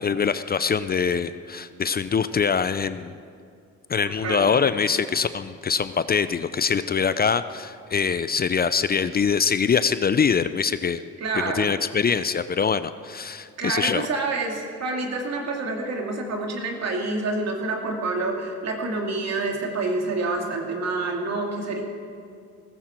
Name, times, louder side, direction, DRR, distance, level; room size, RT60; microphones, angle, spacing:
voice 1, 0.0-3.2 3.9-11.0 11.4-14.0, left 6 dB, 30° left, 13 dB, 0.5 m, -23 dB
voice 2, 4.2-4.5 11.2-11.8 13.6-21.8, right 3 dB, 60° right, 1 dB, 2.6 m, -27 dB
18.0 x 15.0 x 4.5 m, 2.3 s
supercardioid pair, 70°, 29 cm